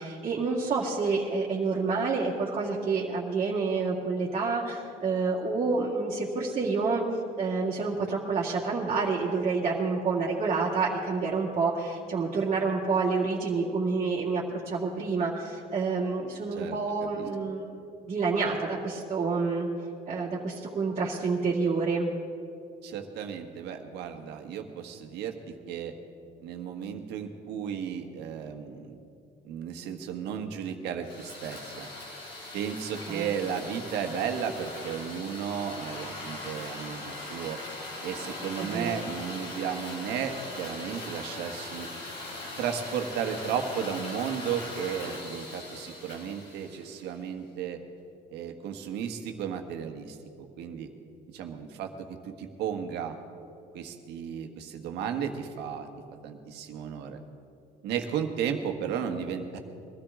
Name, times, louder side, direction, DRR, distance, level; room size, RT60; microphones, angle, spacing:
voice 1, 0.0-7.0 7.4-17.7 18.0-19.7 20.1-22.1 33.1-33.3 38.6-38.9, right 4 dB, 40° right, -6 dB, 2.1 m, -28 dB
voice 2, 22.8-25.9 26.4-29.1 29.4-31.9 32.5-37.6 38.0-41.9 42.6-47.8 48.3-50.9 51.3-53.2 53.7-55.9 56.2-57.2 57.8-59.6, right 7 dB, 80° right, 5 dB, 1.4 m, -34 dB
sound 1, 31.0-47.2, left 2 dB, 80° left, 3.7 m, -40 dB
22.0 x 13.5 x 3.7 m, 2.6 s
cardioid pair, 110°, 17 cm